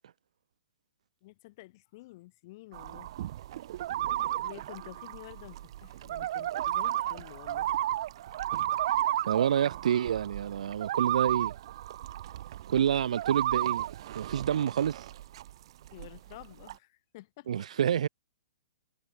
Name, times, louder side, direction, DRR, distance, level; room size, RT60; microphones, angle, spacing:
voice 1, 1.2-3.1 4.4-7.7 15.9-17.5, left 19 dB, 30° left, 4.1 m, -50 dB
sound 1, 2.7-15.5 15.8-16.7, right 13 dB, 45° right, 1.7 m, -33 dB
voice 2, 9.3-11.5 12.7-13.9 14.1-15.0 17.5-18.1, right 9 dB, 60° right, 0.9 m, -28 dB
hypercardioid pair, 170°, 4 cm